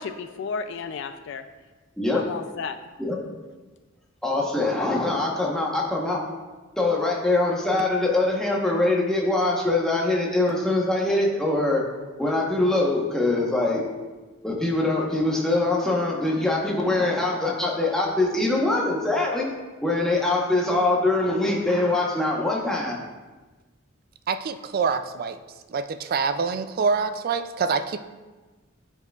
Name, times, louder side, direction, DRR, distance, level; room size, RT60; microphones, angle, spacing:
voice 1, 0.0-1.4 2.1-2.8, left 5 dB, 60° left, 9 dB, 0.3 m, -33 dB
voice 2, 4.2-6.2 6.8-11.8 12.2-13.8 14.4-19.5 19.8-23.0, left 2 dB, 5° left, -3 dB, 1.0 m, -23 dB
voice 3, 24.3-25.4 25.7-28.0, right 5 dB, 45° right, 10 dB, 0.3 m, -25 dB
11.0 x 4.7 x 2.4 m, 1.3 s
head